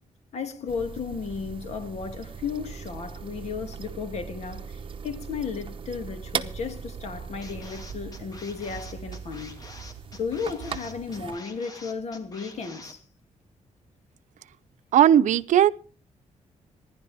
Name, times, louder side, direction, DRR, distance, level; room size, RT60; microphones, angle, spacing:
voice 1, 0.3-9.6 10.1-13.0, left 5 dB, 60° left, 2.3 m, -34 dB
sound 1, 0.7-11.4, right 6 dB, 45° right, 1.0 m, -39 dB
sound 2, 7.4-12.9, left 2 dB, 30° left, 2.6 m, -46 dB
voice 2, 14.9-15.7, right 10 dB, 80° right, 0.6 m, -17 dB
27.0 x 11.0 x 3.5 m
wide cardioid pair, 140°, 13 cm